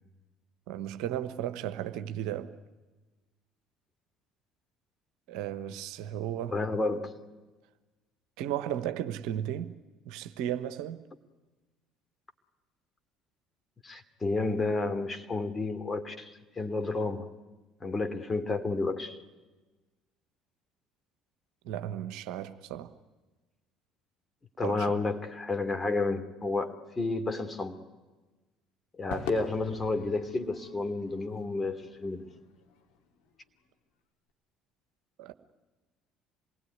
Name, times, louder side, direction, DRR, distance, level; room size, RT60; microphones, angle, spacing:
voice 1, 0.7-2.5 5.3-6.6 8.4-9.8 10.0-11.0 21.6-22.9 24.6-24.9 35.2-35.3, right 11 dB, 60° right, 1.2 m, -35 dB
voice 2, 6.5-7.1 13.8-17.2 17.8-19.2 24.6-27.8 29.0-32.2, left 3 dB, 25° left, 2.8 m, -31 dB
Crowd / Fireworks, 29.1-33.6, left 6 dB, 65° left, 2.9 m, -45 dB
27.0 x 20.5 x 9.6 m
figure-of-eight pair, 55°, 0 cm